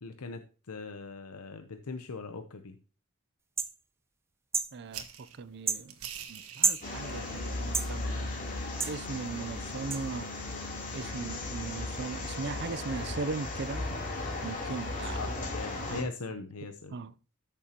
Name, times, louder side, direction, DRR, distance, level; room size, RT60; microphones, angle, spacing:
voice 1, 0.0-2.8 15.1-17.0, left 4 dB, 80° left, 0.8 m, -41 dB
sound 1, 3.6-3.7 4.5-4.7 5.7-5.8 6.6-6.8 7.7-7.9 8.8-9.0 9.9-10.0, right 4 dB, 10° right, 0.7 m, -28 dB
voice 2, 4.7-5.9 6.3-8.3 8.9-10.3 10.9-13.8 14.4-15.2 15.9-16.1 16.9-17.1, right 4 dB, 50° right, 0.5 m, -38 dB
sound 2, 4.9-11.0, right 8 dB, 75° right, 1.5 m, -49 dB
sound 3, 6.8-16.0, left 2 dB, 40° left, 3.4 m, -36 dB
13.5 x 6.9 x 2.9 m
head